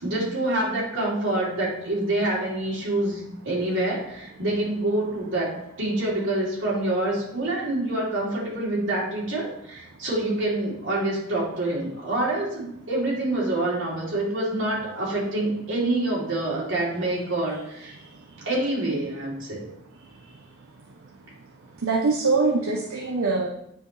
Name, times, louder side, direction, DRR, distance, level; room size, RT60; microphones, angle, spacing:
voice 1, 0.0-17.9 18.4-19.6, right 1 dB, 60° right, -6 dB, 3.1 m, -26 dB
voice 2, 17.9-18.5 20.0-21.3 21.6-23.5, right 3 dB, 80° right, 0 dB, 0.8 m, -26 dB
9.0 x 5.1 x 3.3 m, 0.78 s
head